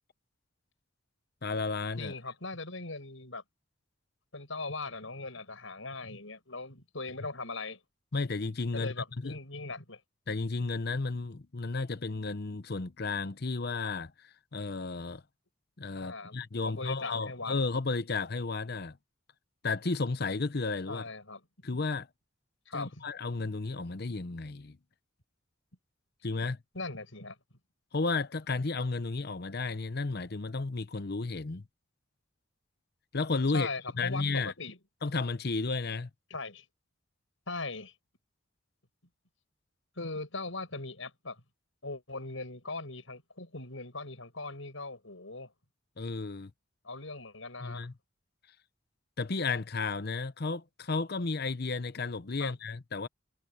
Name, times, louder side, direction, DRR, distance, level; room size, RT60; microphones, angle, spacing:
voice 1, 1.4-2.1 8.1-9.4 10.3-15.2 15.8-19.0 19.6-21.0 21.6-22.1 22.7-24.8 26.2-26.6 27.9-31.6 33.1-33.7 34.0-34.5 35.0-36.1 46.0-46.5 47.6-47.9 49.2-53.1, left 3 dB, 55° left, 0.8 m, -33 dB
voice 2, 2.0-3.4 4.3-7.8 8.7-10.0 16.0-17.6 20.9-21.4 22.7-23.1 26.7-27.4 33.5-34.8 36.3-36.6 37.5-37.9 40.0-41.4 41.8-45.5 46.8-47.9 52.4-52.6, left 3 dB, 80° left, 6.4 m, -40 dB
head